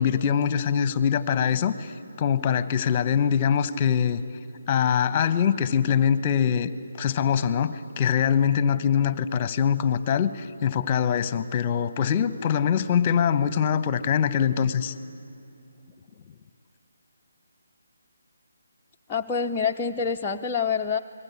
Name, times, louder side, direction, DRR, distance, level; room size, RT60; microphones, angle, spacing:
voice 1, 0.0-1.9 2.2-4.2 4.7-6.7 7.0-14.9, left 8 dB, 30° left, 14 dB, 1.0 m, -23 dB
voice 2, 19.1-21.0, left 6 dB, 15° left, -2 dB, 0.6 m, -26 dB
28.5 x 20.5 x 9.7 m, 2.6 s
figure-of-eight pair, 150°, 0 cm